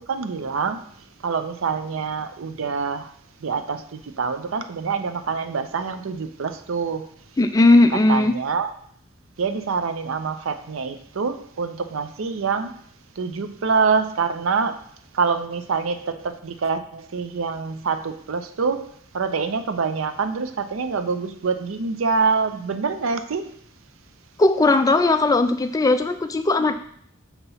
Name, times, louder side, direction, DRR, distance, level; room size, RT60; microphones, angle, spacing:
voice 1, 0.1-0.8 1.2-3.1 3.4-7.1 8.1-8.7 9.4-12.7 13.2-14.8 15.1-18.9 19.1-23.5, right 5 dB, 70° right, 9 dB, 0.5 m, -25 dB
voice 2, 7.4-8.3 24.4-26.7, left 2 dB, 15° left, 8 dB, 0.3 m, -17 dB
6.8 x 2.9 x 5.4 m, 0.63 s
head